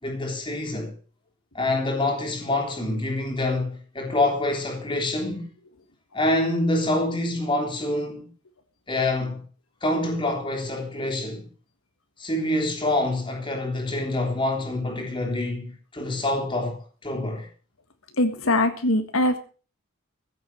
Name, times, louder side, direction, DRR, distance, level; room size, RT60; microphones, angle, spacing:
voice 1, 0.0-0.9 1.5-5.4 6.1-8.3 8.9-9.4 9.8-11.5 12.2-17.5, left 2 dB, 25° left, 3.5 m, -26 dB
voice 2, 18.2-19.4, left 1 dB, 80° left, 1.9 m, -22 dB
15.0 x 7.8 x 7.6 m
head